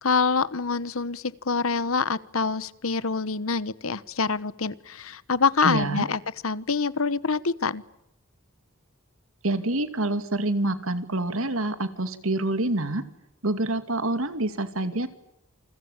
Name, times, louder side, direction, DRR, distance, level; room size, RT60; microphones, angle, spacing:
voice 1, 0.0-7.8, left 4 dB, 80° left, 18 dB, 1.1 m, -26 dB
voice 2, 5.6-6.1 9.4-13.0 13.4-15.1, right 2 dB, 80° right, 11 dB, 2.6 m, -27 dB
28.5 x 22.5 x 9.0 m, 0.86 s
head